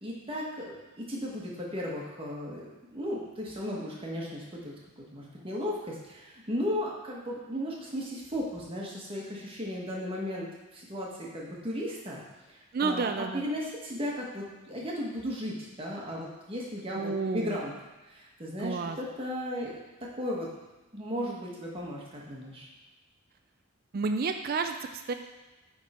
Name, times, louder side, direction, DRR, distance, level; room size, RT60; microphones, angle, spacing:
voice 1, 0.0-4.7 5.1-12.2 12.5-13.0 13.3-17.7 18.1-19.8 20.1-20.5 20.9-22.7, equal, 25° right, -4 dB, 1.3 m, -35 dB
voice 2, 12.7-13.5 16.9-17.6 18.6-19.0 23.9-25.1, right 4 dB, 45° right, 7 dB, 0.3 m, -30 dB
8.5 x 3.6 x 4.3 m, 1.1 s
head